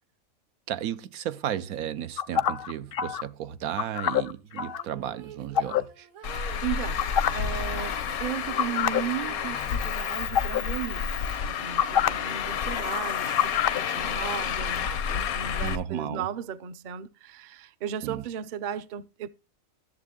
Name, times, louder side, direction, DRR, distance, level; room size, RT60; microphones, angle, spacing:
voice 1, 0.7-6.1 15.6-16.3 18.0-18.2, right 10 dB, 85° right, 1.2 m, -34 dB
sound 1, 2.2-3.2 3.8-4.8 5.6-5.8 7.0-7.5 7.8-8.0 8.6-9.0 9.4-9.6 10.3-10.6 11.8-12.1 13.4-13.8, left 9 dB, 55° left, 0.6 m, -26 dB
sound 2, 4.5-7.3 8.0-10.0 10.3-11.4, right 7 dB, 70° right, 1.8 m, -49 dB
Traffic noise roadway noise, 6.2-15.8, left 7 dB, 90° left, 1.3 m, -30 dB
voice 2, 6.6-7.1 7.3-11.1 11.4-19.3, right 9 dB, 50° right, 0.6 m, -35 dB
13.5 x 7.5 x 3.6 m
omnidirectional pair, 1.5 m